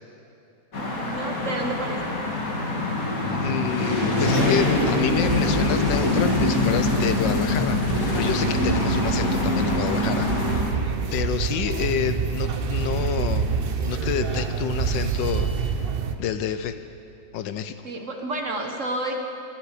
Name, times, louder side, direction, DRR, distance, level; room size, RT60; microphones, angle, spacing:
sound 1, 0.7-10.6, left 2 dB, 45° left, 2.7 m, -24 dB
voice 1, 0.8-2.0 17.8-19.1, right 2 dB, 45° right, 2 dB, 1.6 m, -30 dB
voice 2, 3.3-10.3 11.1-13.5 13.9-15.5 16.2-16.8 17.3-17.8, left 8 dB, 75° left, 10 dB, 1.3 m, -28 dB
sound 2, 4.3-16.2, right 6 dB, 60° right, 0.5 m, -28 dB
21.0 x 13.0 x 5.0 m, 2.8 s
omnidirectional pair, 2.0 m